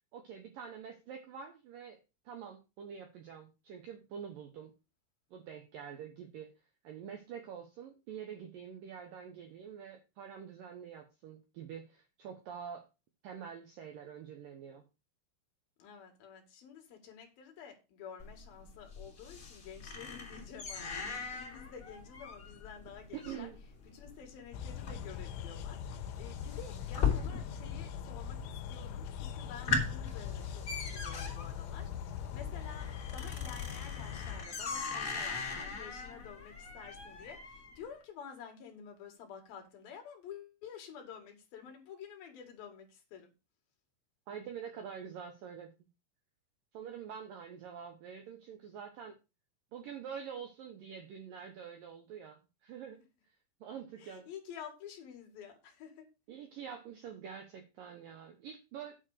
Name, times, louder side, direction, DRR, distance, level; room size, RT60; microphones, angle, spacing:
voice 1, 0.1-2.0 2.3-4.7 5.3-6.5 6.8-12.9 13.2-14.8 23.1-23.6 44.3-45.7 46.7-49.2 49.7-53.0 53.6-54.3 56.3-59.0, right 7 dB, 75° right, 5 dB, 2.0 m, -46 dB
voice 2, 15.8-23.5 23.8-43.3 54.0-56.1, left 7 dB, 60° left, 4 dB, 3.3 m, -50 dB
sound 1, 18.2-27.8 28.0-28.6 29.0-29.1 29.4-37.8, left 5 dB, 25° left, 3.6 m, -39 dB
sound 2, 24.5-34.5, left 8 dB, 85° left, 3.1 m, -41 dB
9.7 x 4.8 x 6.4 m, 0.28 s
omnidirectional pair, 5.5 m